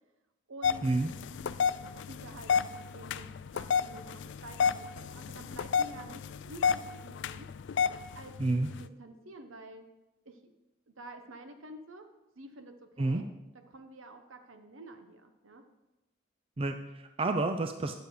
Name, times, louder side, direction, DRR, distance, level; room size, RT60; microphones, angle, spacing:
voice 1, 0.5-0.8 1.1-7.5 8.2-9.9 10.2-10.5 10.9-12.1 12.4-13.2 13.7-15.6, right 2 dB, 75° right, 7 dB, 1.0 m, -49 dB
sound 1, 0.6-8.9, left 6 dB, 60° left, 0.3 m, -32 dB
voice 2, 16.6-17.9, right 2 dB, 25° right, 6 dB, 0.4 m, -29 dB
10.0 x 6.8 x 4.8 m, 1.0 s
head